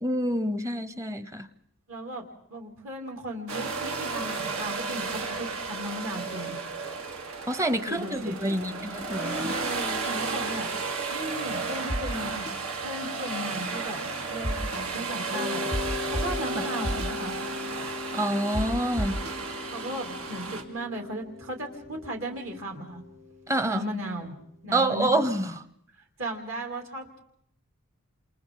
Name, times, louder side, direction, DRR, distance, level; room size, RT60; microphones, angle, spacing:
voice 1, 0.0-1.5 7.5-9.5 16.6-16.7 18.1-19.2 23.5-23.8 24.7-25.6, right 1 dB, 15° right, 13 dB, 0.8 m, -27 dB
voice 2, 1.9-2.2 2.5-6.6 7.9-8.9 9.4-10.7 11.1-12.4 12.8-15.7 16.1-17.4 19.7-23.0 23.6-24.3 24.6-25.1 26.2-27.2, right 1 dB, 65° right, 2 dB, 3.2 m, -36 dB
sound 1, 3.5-20.6, right 4 dB, 85° right, 2.7 m, -33 dB
sound 2, 11.9-12.0 12.5-12.6 14.4-14.8 15.7-15.8 16.1-16.2 16.8-17.1 18.5-18.6 19.0-19.3, equal, 45° right, 3.9 m, -29 dB
Mallet percussion, 15.3-23.9, left 5 dB, 30° right, 1.5 m, -39 dB
28.5 x 27.5 x 3.9 m, 0.71 s
head